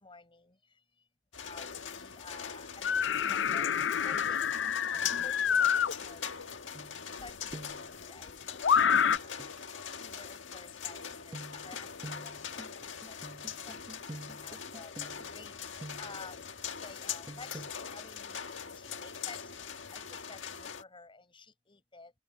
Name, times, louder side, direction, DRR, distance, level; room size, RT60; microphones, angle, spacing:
voice 1, 0.0-0.6 1.4-3.8 4.0-4.5 4.8-5.7 6.0-6.5 7.2-9.4 10.0-12.6 13.1-13.2 13.6-13.7 14.4-15.6 16.0-18.4 18.7-19.5 19.9-22.1, left 3 dB, 30° left, 4.8 m, -52 dB
sound 1, 1.3-20.8, left 7 dB, 90° left, 1.7 m, -42 dB
sound 2, 2.8-5.9 7.3-7.4 8.6-9.2, left 7 dB, 70° left, 0.5 m, -27 dB
sound 3, 6.7-7.2 7.5-7.9 9.4-9.5 11.3-16.3 17.3-17.7, right 1 dB, 20° right, 1.0 m, -47 dB
open air
head